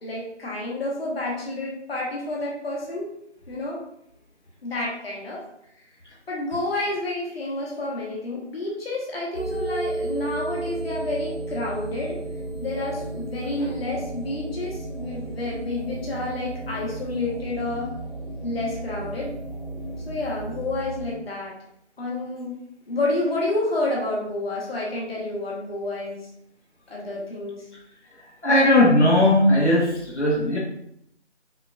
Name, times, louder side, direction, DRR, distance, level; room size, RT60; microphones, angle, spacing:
voice 1, 0.0-3.1 3.5-3.8 4.6-5.4 6.3-12.2 12.6-18.0 18.4-19.3 20.1-21.5 22.0-22.6 22.9-26.3 26.9-27.7, left 2 dB, 60° left, -4 dB, 1.4 m, -29 dB
sound 1, 9.3-21.1, right 2 dB, 10° right, 0.7 m, -33 dB
voice 2, 28.4-30.6, left 1 dB, 75° left, -4 dB, 1.4 m, -18 dB
5.8 x 3.0 x 2.4 m, 0.75 s
figure-of-eight pair, 160°, 34 cm